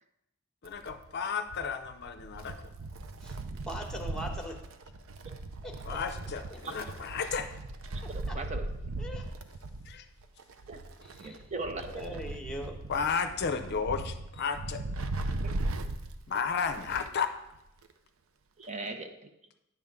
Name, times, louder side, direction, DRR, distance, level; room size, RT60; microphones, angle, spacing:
voice 1, 0.6-2.7 5.9-7.5 9.9-10.0 12.9-14.8 16.3-17.3, left 6 dB, 50° left, 9 dB, 0.5 m, -33 dB
Wind, 0.7-17.3 17.6-17.7 18.6-18.7, right 2 dB, 75° right, 0.6 m, -38 dB
voice 2, 3.7-4.6 5.6-6.0 6.5-6.6 8.3-8.4 9.0-9.2 11.2-11.4 11.9-12.7, equal, 5° left, 2 dB, 1.0 m, -40 dB
voice 3, 11.2-12.0 15.4-15.5 18.6-19.3, right 3 dB, 35° right, 6 dB, 0.6 m, -38 dB
9.4 x 3.6 x 6.6 m, 0.87 s
head